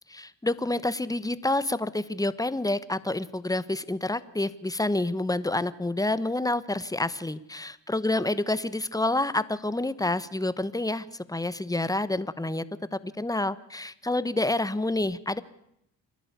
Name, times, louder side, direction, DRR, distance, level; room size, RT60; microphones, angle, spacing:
voice 1, 0.1-12.7 12.9-15.4, left 2 dB, 10° left, 15 dB, 1.2 m, -28 dB
28.0 x 11.5 x 8.3 m, 0.77 s
supercardioid pair, 50°, 45 cm